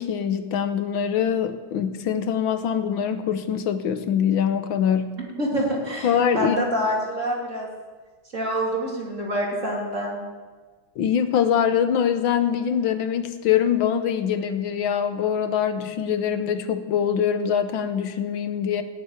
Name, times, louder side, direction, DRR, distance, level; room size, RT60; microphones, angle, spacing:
voice 1, 0.0-5.2 6.0-6.6 11.0-18.8, left 8 dB, 80° left, 9 dB, 1.7 m, -23 dB
voice 2, 5.2-7.7 8.3-10.2, equal, 40° right, -2 dB, 3.4 m, -26 dB
17.0 x 7.3 x 9.6 m, 1.4 s
omnidirectional pair, 2.1 m